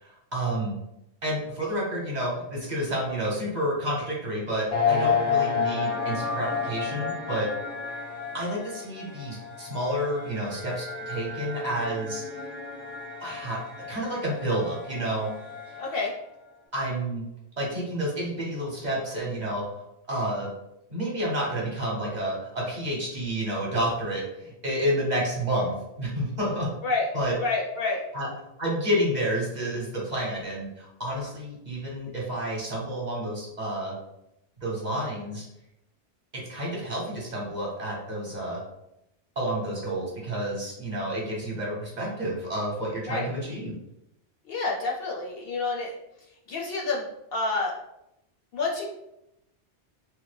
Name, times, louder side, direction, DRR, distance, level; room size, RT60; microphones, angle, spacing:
voice 1, 0.0-0.7 1.2-7.5 8.3-12.2 13.2-13.6 13.9-15.3 16.7-17.2 17.6-19.6 20.1-20.5 20.9-26.7 27.1-27.3 28.1-28.3 28.6-33.9 34.6-35.5 36.3-38.6 39.4-43.8, right 1 dB, 40° right, -4 dB, 0.8 m, -30 dB
sound 1, 4.7-16.1, left 5 dB, 5° left, 0.5 m, -31 dB
voice 2, 15.8-16.1 26.8-27.1 27.4-28.0 43.1-43.3 44.5-45.9 46.5-47.1 47.3-47.7 48.5-48.8, left 3 dB, 65° left, -2 dB, 0.7 m, -28 dB
3.2 x 2.1 x 3.2 m, 0.85 s
omnidirectional pair, 1.2 m